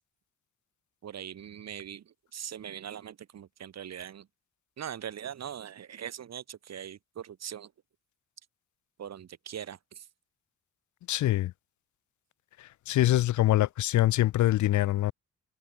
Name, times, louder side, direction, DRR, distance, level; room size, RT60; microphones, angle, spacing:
voice 1, 1.0-4.3 4.8-7.7 9.0-10.1, right 9 dB, 65° right, 3.7 m, -41 dB
voice 2, 11.1-11.5 12.9-15.1, left 15 dB, 80° left, 0.8 m, -24 dB
cardioid pair, 90°, 29 cm